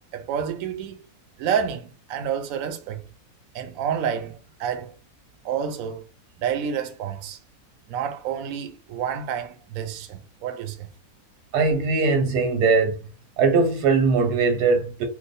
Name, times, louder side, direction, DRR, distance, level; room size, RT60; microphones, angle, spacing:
voice 1, 0.1-1.0 1.4-3.0 3.5-4.9 5.4-6.0 6.4-7.4 7.9-10.9, right 8 dB, 70° right, 0.9 m, -29 dB
voice 2, 11.5-13.0 13.4-15.0, right 4 dB, 85° right, 1.4 m, -20 dB
3.0 x 2.0 x 4.0 m
omnidirectional pair, 1.6 m